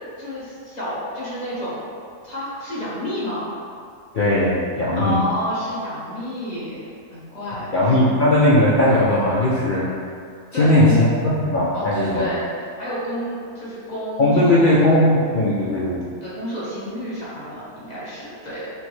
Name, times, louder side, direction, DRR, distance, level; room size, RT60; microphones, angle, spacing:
voice 1, 0.2-1.8 2.2-3.5 4.9-6.8 7.1-7.7 10.5-11.0 11.7-12.5 12.8-14.8 16.2-18.7, equal, 30° left, -9 dB, 1.1 m, -29 dB
voice 2, 4.1-5.2 7.7-9.9 10.6-12.3 14.2-16.1, left 1 dB, 85° left, -7 dB, 0.4 m, -18 dB
6.0 x 2.1 x 3.1 m, 2.3 s
omnidirectional pair, 1.5 m